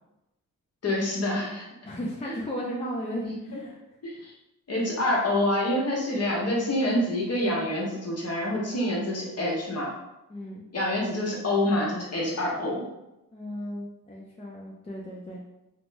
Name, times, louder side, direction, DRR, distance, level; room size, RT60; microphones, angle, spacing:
voice 1, 0.8-1.7 2.3-2.4 3.2-3.6 4.0-4.3 4.7-9.9 10.7-12.9, left 1 dB, 45° left, -3 dB, 1.0 m, -27 dB
voice 2, 1.8-3.8 4.2-4.3 10.3-10.6 13.3-15.4, equal, 15° left, -3 dB, 0.5 m, -35 dB
2.8 x 2.0 x 3.3 m, 0.94 s
cardioid pair, 65°, 36 cm